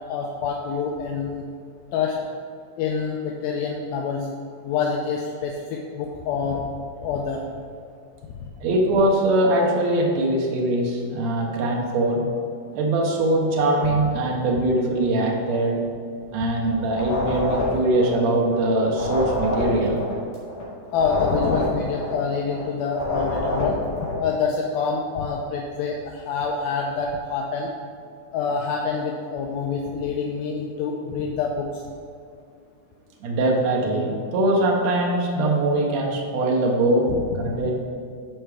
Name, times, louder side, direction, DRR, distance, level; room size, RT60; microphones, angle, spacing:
voice 1, 0.1-1.5 1.9-2.2 2.8-4.3 4.6-6.7 7.0-7.4 8.4-8.5 13.9-14.0 14.6-14.7 20.9-27.7 28.3-31.8 37.1-37.2, left 5 dB, 80° left, 0 dB, 2.3 m, -26 dB
voice 2, 8.6-12.2 12.7-15.8 16.3-20.0 33.2-37.1 37.4-37.8, right 1 dB, 85° right, -1 dB, 1.5 m, -22 dB
sound 1, 16.9-18.6 18.9-22.6 22.9-24.2, left 1 dB, 50° left, 3.1 m, -27 dB
12.0 x 4.6 x 3.4 m, 2.3 s
omnidirectional pair, 4.4 m